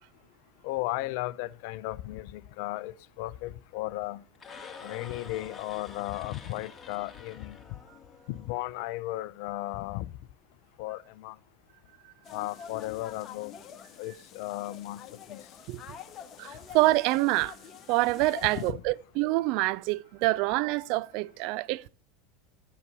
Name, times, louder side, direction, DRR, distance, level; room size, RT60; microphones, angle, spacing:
voice 1, 0.6-4.2 4.8-7.6 8.3-10.1 10.8-11.3 12.3-13.5 14.0-15.0 15.3-15.4 18.6-18.7, left 17 dB, 55° left, 0.6 m, -35 dB
sound 1, 4.3-8.5, left 5 dB, 20° left, 2.5 m, -47 dB
sound 2, 12.2-18.7, left 7 dB, 35° left, 1.5 m, -46 dB
voice 2, 16.4-17.6 17.9-21.9, right 20 dB, 50° right, 0.5 m, -26 dB
12.0 x 9.6 x 5.7 m
figure-of-eight pair, 80°, 0 cm